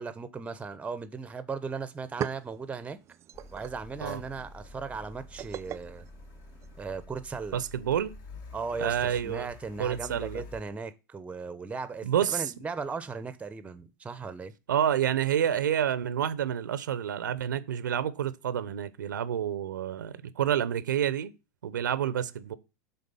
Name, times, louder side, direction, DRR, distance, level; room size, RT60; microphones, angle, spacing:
voice 1, 0.0-3.0 3.5-6.1 6.8-7.6 8.5-14.5, right 4 dB, 15° right, 0.7 m, -37 dB
sound 1, 1.9-7.0, right 10 dB, 30° right, 0.4 m, -42 dB
Car, 3.3-10.6, left 3 dB, 45° left, 1.6 m, -48 dB
voice 2, 7.5-8.1 8.8-9.5 9.8-10.4 12.0-12.4 14.7-21.3 21.6-22.6, right 9 dB, 85° right, 0.7 m, -28 dB
6.7 x 3.9 x 5.5 m
hypercardioid pair, 105°, 10 cm